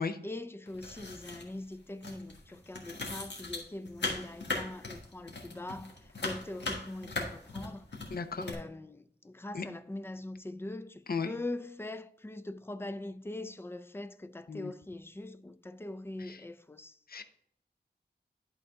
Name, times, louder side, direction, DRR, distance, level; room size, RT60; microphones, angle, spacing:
voice 1, 0.0-7.9 8.4-17.0, left 2 dB, 15° left, 0.4 m, -42 dB
sound 1, 0.7-1.7 2.0-8.5, left 3 dB, 75° left, 1.5 m, -39 dB
voice 2, 8.1-8.5 9.5-9.6 11.1-11.3 14.5-14.7 16.3-16.4 17.1-17.2, left 5 dB, 55° left, 0.6 m, -34 dB
11.0 x 3.9 x 3.6 m
wide cardioid pair, 95°, 18 cm